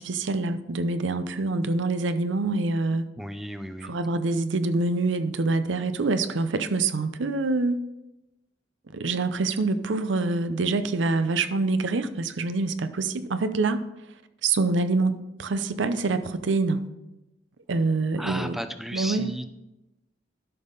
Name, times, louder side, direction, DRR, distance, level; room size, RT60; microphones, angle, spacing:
voice 1, 0.0-3.1 3.8-7.8 8.9-13.8 14.4-16.9 17.7-18.6 18.9-19.3, right 3 dB, 75° right, 11 dB, 0.6 m, -25 dB
voice 2, 3.2-3.9 18.2-19.5, equal, ahead, 9 dB, 0.5 m, -34 dB
12.0 x 5.4 x 3.9 m, 0.95 s
head